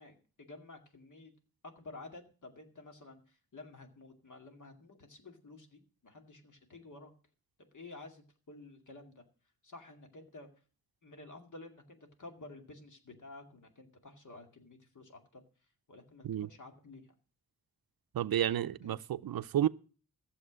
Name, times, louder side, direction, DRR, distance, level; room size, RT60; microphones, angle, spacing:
voice 1, 0.0-1.3 1.6-7.1 7.7-9.2 9.6-10.5 11.0-15.4 15.9-17.1 18.8-18.9, left 2 dB, 55° left, 2.3 m, -52 dB
voice 2, 18.1-19.7, right 11 dB, 75° right, 0.5 m, -31 dB
14.5 x 7.3 x 6.2 m
wide cardioid pair, 95°, 36 cm